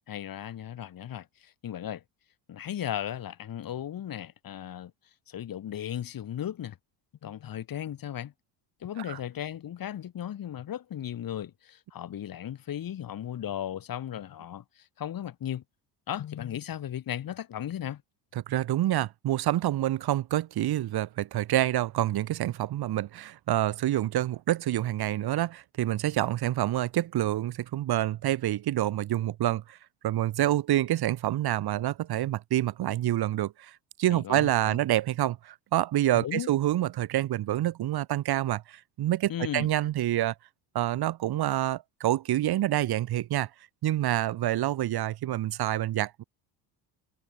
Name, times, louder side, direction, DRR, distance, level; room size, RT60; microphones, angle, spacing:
voice 1, 0.1-2.0 2.5-4.9 5.3-6.8 7.2-8.3 8.8-15.6 16.1-18.0 34.0-34.8 36.1-36.5 39.3-39.7, left 10 dB, 45° left, 7.4 m, -36 dB
voice 2, 18.4-29.8 30.0-40.3 40.7-43.5 43.8-46.2, right 13 dB, 55° right, 2.7 m, -27 dB
cardioid pair, 125°, 47 cm